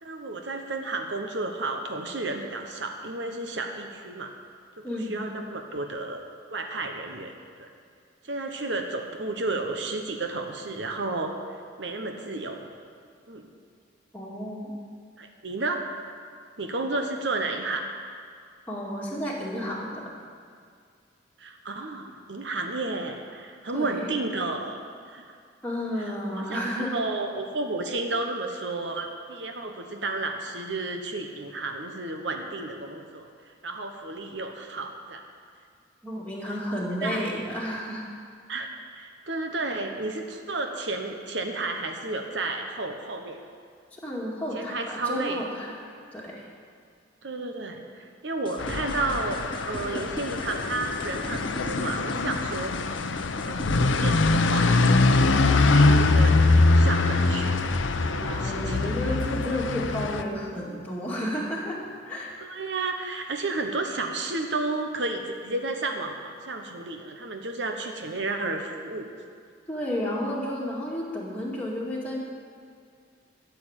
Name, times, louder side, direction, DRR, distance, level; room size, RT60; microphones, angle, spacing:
voice 1, 0.0-4.3 4.8-6.2 6.5-7.3 7.6-7.7 8.2-11.3 11.8-12.7 13.3-13.5 15.2-15.8 16.6-17.8 21.4-25.3 26.0-33.3 33.6-35.2 37.0-37.4 38.5-43.4 44.5-45.4 47.2-49.4 49.7-52.7 53.5-55.1 55.4-56.4 56.7-57.7 58.0-58.8 59.1-59.2 62.4-69.1, right 2 dB, 70° right, 4 dB, 1.1 m, -32 dB
voice 2, 4.8-5.3 14.1-14.7 18.7-20.1 23.7-24.1 25.6-27.0 36.0-38.1 43.9-45.8 46.1-46.5 58.2-62.3 69.7-72.2, equal, 10° left, -5 dB, 2.1 m, -32 dB
sound 1, 48.5-55.3, left 1 dB, 25° left, 0.7 m, -38 dB
sound 2, 48.6-60.2, left 3 dB, 90° left, 0.7 m, -23 dB
13.0 x 7.0 x 8.7 m, 2.2 s
head